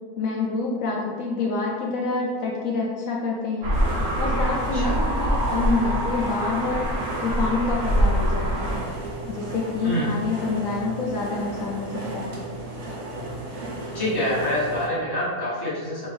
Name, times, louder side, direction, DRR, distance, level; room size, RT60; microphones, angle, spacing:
voice 1, 0.2-3.7 4.2-6.9 7.2-8.8 9.3-12.4, left 3 dB, 70° left, -2 dB, 1.0 m, -27 dB
sound 1, 3.6-8.8, equal, 50° right, 1.0 m, -24 dB
sound 2, 3.7-14.9, right 2 dB, 75° right, 1.3 m, -35 dB
Keyboard (musical), 5.8-8.3, left 1 dB, 55° left, 0.5 m, -39 dB
voice 2, 9.8-10.1 13.9-16.1, left 1 dB, 15° left, -8 dB, 1.1 m, -26 dB
4.3 x 3.5 x 3.4 m, 1.5 s
omnidirectional pair, 1.5 m